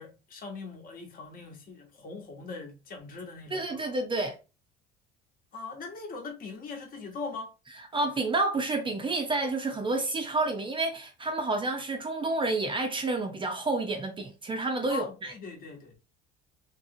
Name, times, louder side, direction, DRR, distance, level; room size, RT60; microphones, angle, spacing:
voice 1, 0.0-3.8 5.5-7.5 14.9-16.0, left 4 dB, 40° left, 1.0 m, -41 dB
voice 2, 3.5-4.4 7.9-15.3, right 2 dB, 25° right, 0.5 m, -29 dB
2.9 x 2.8 x 2.6 m
cardioid pair, 120°, 21 cm